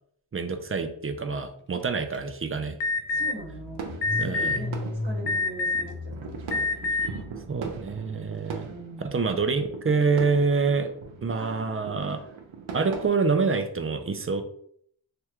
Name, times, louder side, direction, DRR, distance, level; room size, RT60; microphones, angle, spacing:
voice 1, 0.3-2.8 4.2-4.6 7.5-8.7 9.1-10.9 11.2-12.2 12.7-14.4, right 4 dB, 30° right, 7 dB, 0.5 m, -26 dB
Car / Engine starting, 2.1-2.2 2.5-7.8, left 2 dB, 25° left, 0.4 m, -37 dB
Alarm, 2.8-3.3 4.0-4.6 5.3-5.9 6.5-7.1, left 3 dB, 70° left, 0.6 m, -25 dB
voice 2, 3.1-6.7 8.7-9.2 11.4-12.3, right 2 dB, 65° right, -1 dB, 1.1 m, -42 dB
sound 1, 3.5-13.1, right 5 dB, 90° right, 0.6 m, -41 dB
3.4 x 2.2 x 3.0 m, 0.64 s
cardioid pair, 45°, 46 cm